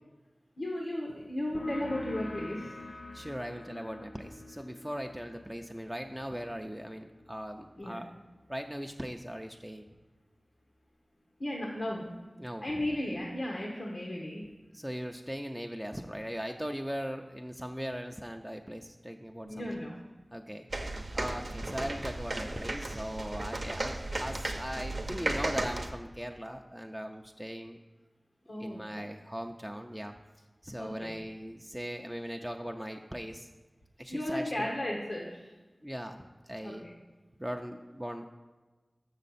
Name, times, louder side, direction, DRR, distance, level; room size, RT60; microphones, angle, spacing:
voice 1, 0.6-2.7 7.8-8.0 11.4-12.1 12.6-14.4 19.4-20.0 28.5-28.8 30.8-31.1 34.1-35.5 36.6-36.9, left 1 dB, 80° left, -2 dB, 1.2 m, -35 dB
sound 1, 1.6-8.8, left 2 dB, 60° left, 0.6 m, -46 dB
voice 2, 3.1-8.1 8.5-9.9 12.4-12.6 14.7-19.8 20.3-20.7 21.1-27.8 28.6-30.1 30.6-33.5 34.0-34.7 35.8-36.8 37.4-38.2, equal, 5° right, 3 dB, 0.4 m, -39 dB
sound 2, 20.7-25.9, right 2 dB, 70° right, 0.7 m, -35 dB
6.5 x 6.4 x 4.1 m, 1.2 s
wide cardioid pair, 40°, 0 cm